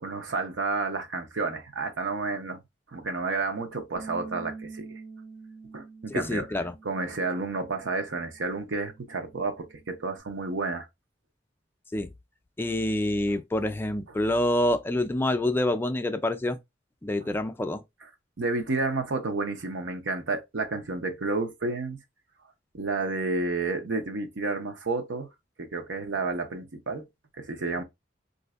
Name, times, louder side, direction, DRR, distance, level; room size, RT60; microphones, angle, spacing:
voice 1, 0.0-2.6 2.9-5.0 5.7-6.5 6.8-10.9 18.4-22.0 22.7-25.3 25.6-27.1 27.4-27.8, right 3 dB, 85° right, 0.7 m, -30 dB
Bass guitar, 4.0-10.2, right 4 dB, 70° right, 1.6 m, -46 dB
voice 2, 6.2-6.7 11.9-12.1 12.6-16.6 17.0-17.8, left 1 dB, 10° left, 0.3 m, -27 dB
4.1 x 2.6 x 2.3 m
head